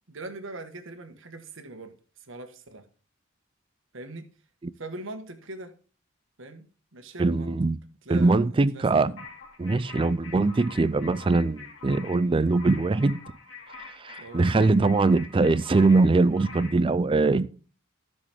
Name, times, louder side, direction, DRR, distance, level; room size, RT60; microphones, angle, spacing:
voice 1, 0.1-2.9 3.9-4.3 4.7-5.7 6.4-6.7 6.9-7.5 8.0-8.4 8.7-9.1 10.0-10.1 14.2-14.4, right 2 dB, 65° right, 1.5 m, -41 dB
voice 2, 7.2-7.8 8.1-9.1 9.6-13.2 14.0-17.6, right 3 dB, 25° right, 0.4 m, -22 dB
sound 1, 9.2-16.8, left 4 dB, 70° left, 2.7 m, -45 dB
15.0 x 6.2 x 3.5 m
head